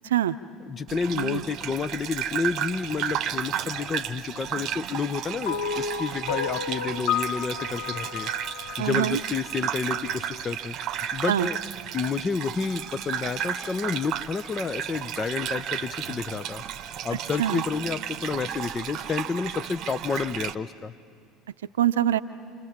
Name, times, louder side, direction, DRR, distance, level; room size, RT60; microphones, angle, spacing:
voice 1, 0.0-0.4 1.2-1.4 8.8-9.2 11.3-11.5 17.4-17.6 21.8-22.2, right 11 dB, 75° right, 13 dB, 0.6 m, -24 dB
voice 2, 0.6-8.3 8.8-10.8 11.1-11.6 11.9-16.6 17.0-20.9, left 5 dB, 30° left, 14 dB, 0.8 m, -30 dB
Gurgling / Bathtub (filling or washing), 0.9-20.5, right 9 dB, 50° right, 0.9 m, -33 dB
sound 1, 5.5-9.8, left 7 dB, 70° left, 1.3 m, -31 dB
29.0 x 28.0 x 7.4 m, 2.2 s
figure-of-eight pair, 65°, 0 cm